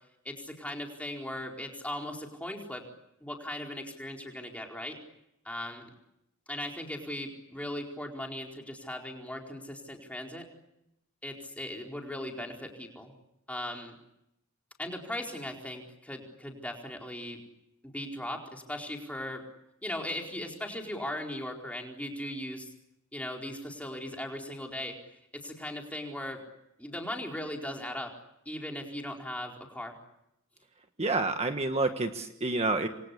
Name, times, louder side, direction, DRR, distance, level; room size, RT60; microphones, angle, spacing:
voice 1, 0.2-2.8 3.2-5.0 5.4-5.9 6.5-10.5 11.2-13.1 13.5-13.9 14.8-17.4 17.8-19.4 19.8-22.7 23.1-25.0 25.3-26.4 26.8-28.1 28.5-29.9, left 1 dB, 5° left, 1 dB, 4.5 m, -38 dB
voice 2, 31.0-32.9, right 3 dB, 30° right, 6 dB, 1.5 m, -28 dB
28.0 x 23.5 x 8.5 m, 0.83 s
head